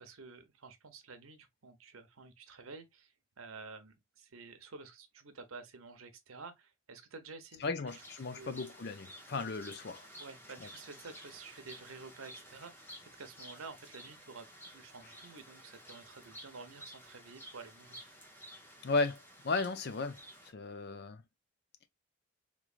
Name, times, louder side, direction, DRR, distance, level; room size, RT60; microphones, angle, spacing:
voice 1, 0.0-8.0 8.3-8.6 10.2-18.0, right 4 dB, 90° right, 0.9 m, -51 dB
voice 2, 7.6-10.0 10.6-10.7 18.8-19.2 19.4-20.2 20.5-21.2, left 3 dB, 50° left, 0.5 m, -35 dB
sound 1, 7.9-20.5, equal, 10° left, 0.6 m, -53 dB
3.6 x 3.2 x 2.4 m
head